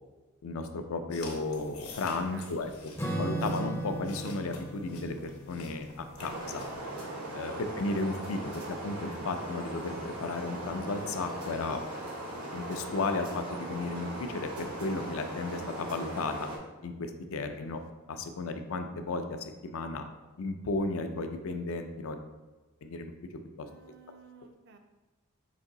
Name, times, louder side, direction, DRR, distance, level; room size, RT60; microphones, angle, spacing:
voice 1, 0.4-2.9 3.2-6.6 7.3-11.8 12.5-16.5 16.8-17.8 18.1-19.4 19.6-20.0 20.4-22.2 22.8-23.1 23.6-23.7, left 3 dB, 65° left, 7 dB, 0.4 m, -34 dB
sound 1, 1.1-6.7, left 3 dB, 85° left, 0.9 m, -47 dB
voice 2, 2.3-2.6 7.4-7.7 17.7-17.8 23.6-24.8, right 4 dB, 50° right, 6 dB, 0.4 m, -54 dB
Acoustic guitar / Strum, 3.0-7.8, right 2 dB, 10° left, 0.5 m, -38 dB
sound 2, 6.2-16.6, right 1 dB, 80° right, 1.0 m, -39 dB
4.9 x 2.6 x 3.8 m, 1.2 s
head